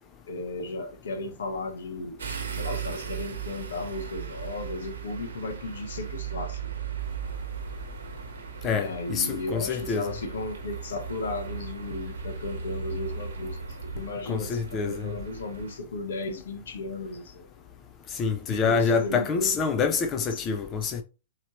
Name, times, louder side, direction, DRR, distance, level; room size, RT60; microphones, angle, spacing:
voice 1, 0.3-6.9 8.7-17.5 18.5-19.6, left 2 dB, 65° left, 0.8 m, -35 dB
sound 1, 2.2-15.8, right 7 dB, 75° right, 1.1 m, -37 dB
voice 2, 8.6-10.1 14.3-15.1 18.1-21.0, left 5 dB, 25° left, 0.5 m, -26 dB
4.3 x 2.9 x 2.9 m
figure-of-eight pair, 110°, 0 cm